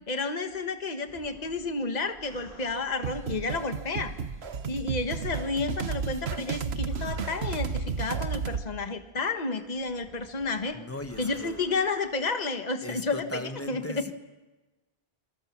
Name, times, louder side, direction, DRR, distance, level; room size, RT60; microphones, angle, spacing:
voice 1, 0.1-4.1 4.7-10.8 11.2-14.0, left 3 dB, 45° left, 6 dB, 1.6 m, -31 dB
sound 1, 1.1-3.6 4.8-8.5 9.3-12.3 13.0-13.3, equal, 35° right, 7.4 m, -54 dB
sound 2, 3.0-8.6, right 5 dB, 85° right, 1.4 m, -32 dB
voice 2, 10.7-11.6 12.8-14.1, left 1 dB, 15° left, 7 dB, 1.4 m, -38 dB
28.0 x 21.0 x 7.4 m, 1.1 s
omnidirectional pair, 1.0 m